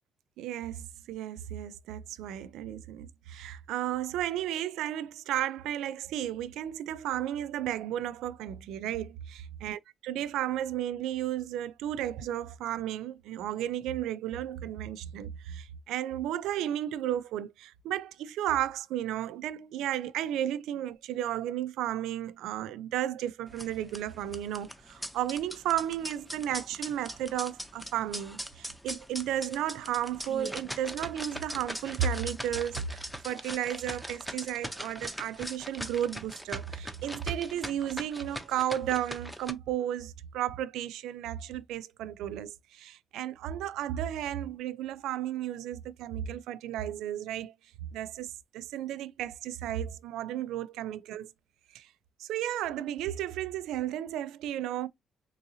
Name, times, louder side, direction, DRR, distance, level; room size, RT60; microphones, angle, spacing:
voice 1, 0.4-47.5 47.9-51.3 51.7-51.9 52.2-54.9, right 11 dB, 90° right, 0.4 m, -33 dB
sound 1, 23.5-39.5, equal, ahead, 0.6 m, -41 dB
3.7 x 2.6 x 2.7 m
cardioid pair, 90°, 0 cm